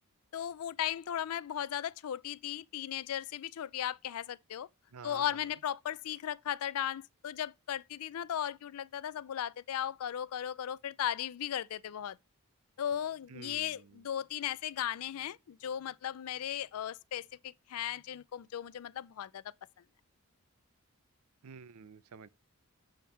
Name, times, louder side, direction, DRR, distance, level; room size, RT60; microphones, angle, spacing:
voice 1, 0.3-4.7 5.0-12.2 12.8-19.4, left 10 dB, 75° left, 0.4 m, -36 dB
voice 2, 4.9-5.4 13.3-14.0 21.4-22.3, right 5 dB, 80° right, 0.5 m, -50 dB
7.7 x 3.6 x 5.7 m
head